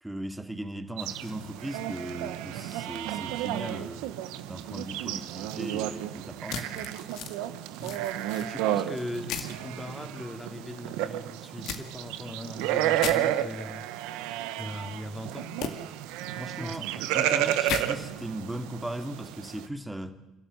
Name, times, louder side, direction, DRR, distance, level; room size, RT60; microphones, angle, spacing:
voice 1, 0.0-6.9 16.3-16.9 17.1-20.2, right 1 dB, 10° right, 2.5 m, -38 dB
sound 1, 1.0-19.7, right 13 dB, 80° right, 1.2 m, -32 dB
sound 2, 6.5-7.3 7.8-8.5 9.3-9.5 11.6-11.8 13.0-13.2 15.6-15.7 17.6-17.8, left 9 dB, 70° left, 2.1 m, -34 dB
voice 2, 8.4-15.9 16.6-16.8, left 1 dB, 10° left, 3.2 m, -40 dB
29.5 x 12.5 x 9.5 m
supercardioid pair, 70°, 0 cm